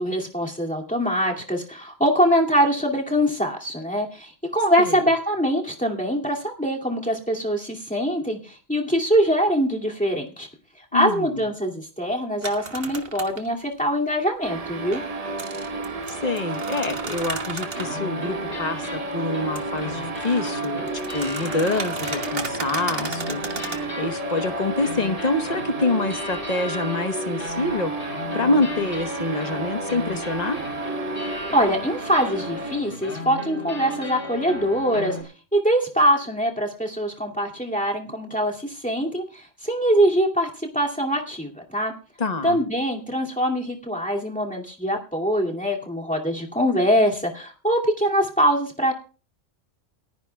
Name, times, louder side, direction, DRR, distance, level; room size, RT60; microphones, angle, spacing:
voice 1, 0.0-10.5 10.9-15.0 31.5-41.9 42.4-48.9, equal, 5° left, -1 dB, 2.3 m, -23 dB
voice 2, 10.9-11.4 16.1-27.9 28.3-30.6 42.2-42.6, left 2 dB, 35° left, 8 dB, 1.2 m, -26 dB
sound 1, 12.4-13.5 14.9-17.9 19.6-19.7 20.0-23.8, right 4 dB, 50° right, 1.6 m, -35 dB
sound 2, 14.4-32.8, right 3 dB, 35° right, 0.9 m, -33 dB
sound 3, 16.0-16.1 16.7-16.8 17.7-35.2, left 1 dB, 70° left, 5.1 m, -34 dB
28.5 x 10.0 x 2.3 m, 0.36 s
omnidirectional pair, 1.3 m